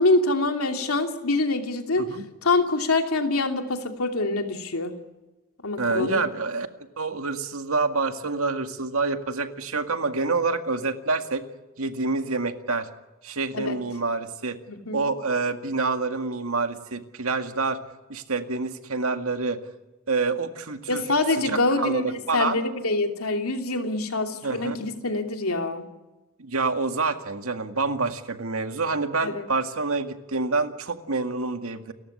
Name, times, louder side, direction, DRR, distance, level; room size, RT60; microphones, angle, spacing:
voice 1, 0.0-2.1 2.4-4.9 5.6-6.2 13.5-13.8 14.7-15.0 20.9-25.8 29.2-29.4, left 2 dB, 90° left, 5 dB, 2.8 m, -25 dB
voice 2, 5.8-6.7 7.0-11.4 11.8-12.9 13.2-14.6 14.9-17.8 18.1-19.6 20.1-21.0 21.4-22.6 24.4-24.8 26.4-31.9, right 3 dB, 80° right, 7 dB, 2.0 m, -27 dB
29.5 x 14.5 x 9.7 m, 1.1 s
head